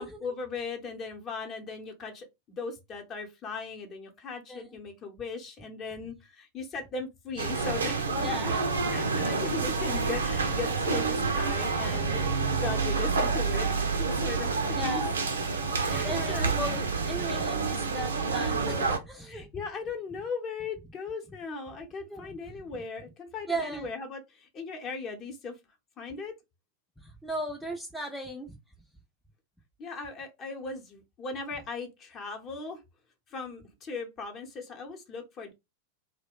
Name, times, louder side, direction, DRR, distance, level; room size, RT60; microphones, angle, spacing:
voice 1, 0.0-2.3 2.6-8.1 8.9-15.0 15.9-16.5 19.3-25.5 26.0-26.3 29.8-32.8 33.3-35.5, left 4 dB, 30° left, 0.8 m, -38 dB
sound 1, 7.4-19.0, right 4 dB, 70° right, 0.5 m, -28 dB
voice 2, 8.2-9.4 14.7-15.1 15.9-19.5 22.1-22.3 23.5-23.9 27.0-28.6, right 1 dB, ahead, 0.4 m, -37 dB
2.3 x 2.1 x 3.6 m
figure-of-eight pair, 90°, 0 cm